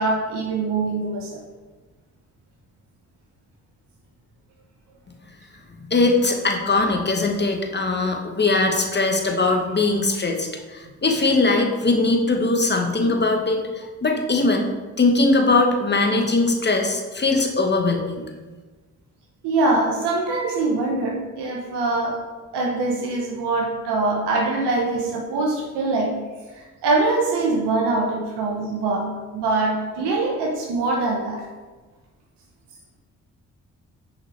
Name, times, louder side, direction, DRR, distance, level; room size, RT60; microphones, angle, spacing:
voice 1, 0.0-1.4 19.4-22.2 22.5-26.1 26.5-31.4, right 3 dB, 75° right, -1 dB, 1.0 m, -23 dB
voice 2, 5.9-14.7 15.0-18.2, left 3 dB, 25° left, 2 dB, 1.2 m, -21 dB
6.3 x 5.0 x 3.4 m, 1.3 s
hypercardioid pair, 40°, 41 cm